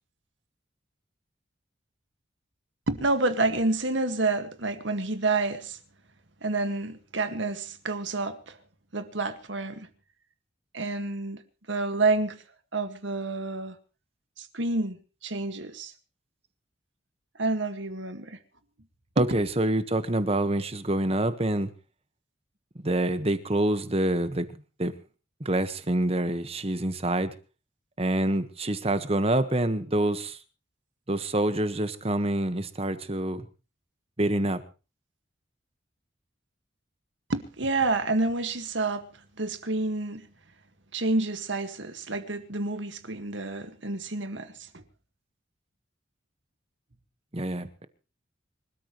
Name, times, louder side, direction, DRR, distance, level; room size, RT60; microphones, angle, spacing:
voice 1, 2.9-5.8 6.4-8.6 8.9-9.9 10.7-11.4 11.7-12.4 12.7-13.8 14.4-15.0 15.2-15.9 17.4-18.4 19.2-19.3 37.3-39.1 39.4-40.3 40.9-44.8, right 2 dB, 75° right, 1.9 m, -29 dB
voice 2, 19.2-21.7 22.8-24.5 24.8-24.9 25.4-27.3 28.0-30.4 31.1-33.5 34.2-34.6 47.3-47.9, right 1 dB, 30° right, 1.5 m, -26 dB
26.0 x 13.5 x 3.2 m
head